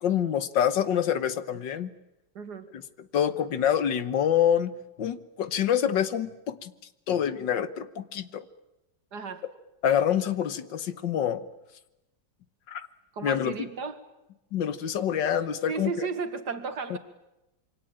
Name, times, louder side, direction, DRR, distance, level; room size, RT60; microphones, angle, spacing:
voice 1, 0.0-1.9 2.7-2.8 3.1-4.7 5.0-6.7 7.1-8.4 9.8-11.4 12.7-12.9 13.2-13.7 14.5-16.1, left 9 dB, 80° left, 14 dB, 1.9 m, -26 dB
voice 2, 2.3-2.7 9.1-9.4 13.1-14.0 15.7-17.0, right 5 dB, 65° right, 10 dB, 2.5 m, -34 dB
27.0 x 24.0 x 8.9 m, 0.92 s
omnidirectional pair, 2.0 m